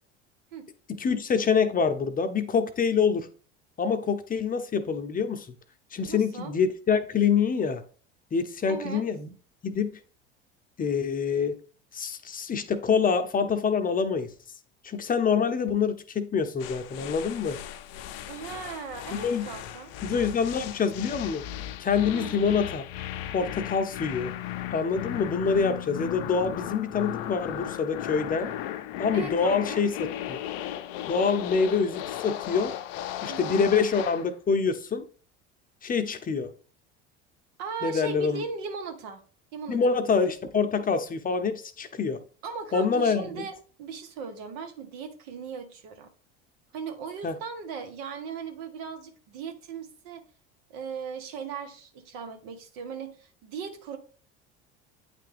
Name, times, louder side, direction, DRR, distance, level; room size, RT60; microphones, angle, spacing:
voice 1, 1.0-3.3 3.8-5.5 5.9-7.8 8.3-9.3 9.6-10.0 10.8-11.6 11.9-14.3 14.8-17.6 19.1-19.5 20.0-21.4 21.8-22.8 23.3-24.3 24.7-28.5 29.0-30.4 31.1-32.7 33.2-35.0 35.8-36.5 37.8-38.4 39.7-42.2 42.7-43.4 47.2-47.3, left 5 dB, 25° left, 0.7 m, -26 dB
voice 2, 6.1-6.5 8.7-9.0 18.3-19.9 22.1-22.4 29.1-29.9 33.3-33.6 37.6-39.2 39.5-40.0 42.4-46.1 46.7-50.2 50.7-54.0, right 6 dB, 70° right, 1.2 m, -38 dB
sound 1, 16.6-34.3, left 12 dB, 65° left, 0.6 m, -36 dB
8.4 x 3.4 x 3.4 m
hypercardioid pair, 80°, 31 cm